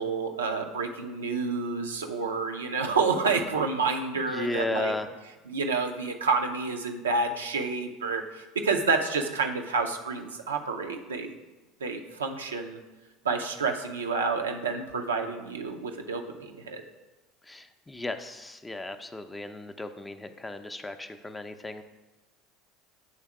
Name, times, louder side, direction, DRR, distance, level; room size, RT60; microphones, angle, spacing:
voice 1, 0.0-4.9 5.5-11.3 11.8-12.8 13.2-16.8, right 4 dB, 85° right, 4 dB, 0.5 m, -29 dB
voice 2, 4.2-5.1 17.4-21.8, left 2 dB, 15° left, 8 dB, 0.5 m, -35 dB
7.2 x 3.4 x 4.7 m, 1.1 s
hypercardioid pair, 70°, 0 cm